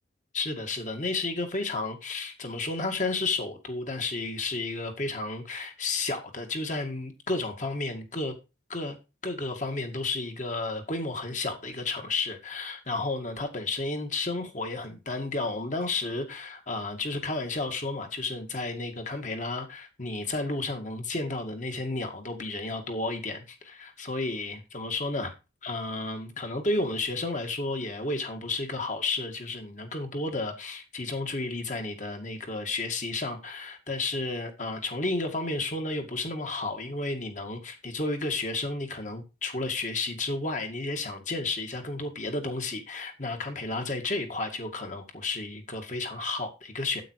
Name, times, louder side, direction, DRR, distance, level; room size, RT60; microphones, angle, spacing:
voice 1, 0.3-8.3 8.7-9.0 9.2-25.3 25.6-47.0, left 2 dB, 40° left, 2.1 m, -32 dB
9.2 x 8.6 x 4.8 m
head